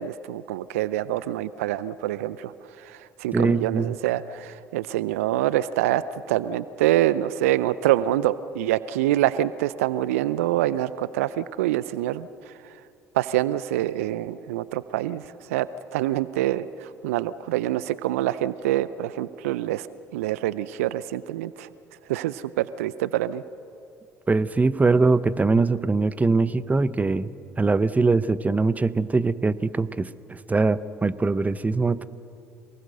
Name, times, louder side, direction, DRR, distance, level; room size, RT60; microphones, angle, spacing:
voice 1, 0.0-2.5 3.2-6.0 6.3-12.3 13.2-15.2 15.5-15.7 15.9-16.7 17.0-19.9 20.1-21.7 22.1-23.4, right 14 dB, 80° right, 17 dB, 0.5 m, -25 dB
voice 2, 3.3-3.9 24.3-27.3 27.6-32.1, right 3 dB, 20° right, 15 dB, 0.9 m, -22 dB
27.0 x 19.5 x 6.6 m, 2.4 s
hypercardioid pair, 55°, 8 cm